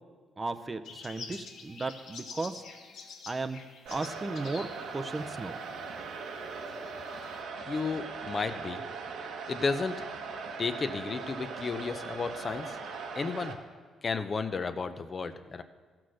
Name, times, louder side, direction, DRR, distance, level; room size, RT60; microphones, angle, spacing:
voice 1, 0.4-2.6 3.3-3.6 3.9-5.6, right 3 dB, 25° right, 10 dB, 0.6 m, -35 dB
sound 1, 0.8-5.7 6.1-7.4, left 5 dB, 75° left, 1.5 m, -48 dB
sound 2, 3.9-13.5, right 4 dB, 80° right, 1.4 m, -40 dB
voice 2, 7.7-8.8 9.5-10.0 10.6-12.8 13.1-13.6 14.0-15.6, left 4 dB, 40° left, 9 dB, 0.7 m, -33 dB
14.5 x 6.1 x 6.4 m, 1.5 s
cardioid pair, 90°, 0 cm